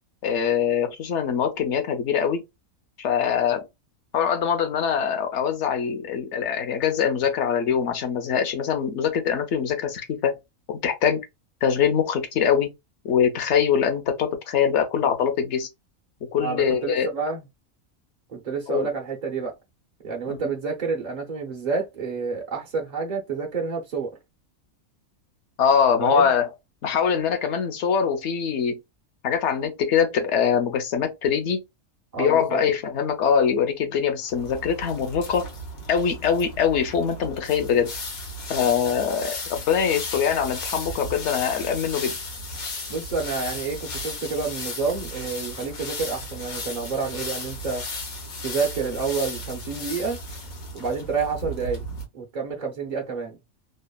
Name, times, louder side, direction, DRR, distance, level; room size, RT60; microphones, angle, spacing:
voice 1, 0.2-2.4 3.0-3.6 4.1-10.4 10.7-11.2 11.6-12.7 13.0-15.7 16.3-17.1 18.7-18.9 20.3-20.4 25.6-26.5 26.8-28.8 29.2-31.6 32.2-35.5 35.9-37.9 38.5-42.2, left 7 dB, 60° left, 0.9 m, -23 dB
voice 2, 16.4-17.4 18.3-19.5 20.0-24.2 26.0-26.3 32.1-32.6 42.9-47.8 48.4-50.2 50.7-51.8 52.1-53.4, right 5 dB, 50° right, 0.5 m, -29 dB
sound 1, 34.2-52.0, left 2 dB, 85° left, 1.4 m, -35 dB
3.0 x 2.0 x 2.2 m
omnidirectional pair, 1.5 m